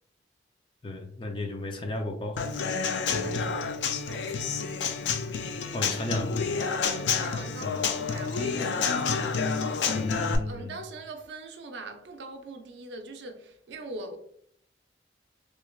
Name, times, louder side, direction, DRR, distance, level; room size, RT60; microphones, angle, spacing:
voice 1, 0.8-2.5 3.1-3.6 5.7-6.4 7.6-7.8 9.9-10.8, left 2 dB, 30° left, 0.5 m, -34 dB
Human voice / Acoustic guitar / Drum, 2.4-10.4, left 5 dB, 85° left, 0.4 m, -29 dB
voice 2, 4.1-5.0 6.7-14.2, right 2 dB, 80° right, 0.5 m, -42 dB
3.2 x 3.0 x 2.3 m
head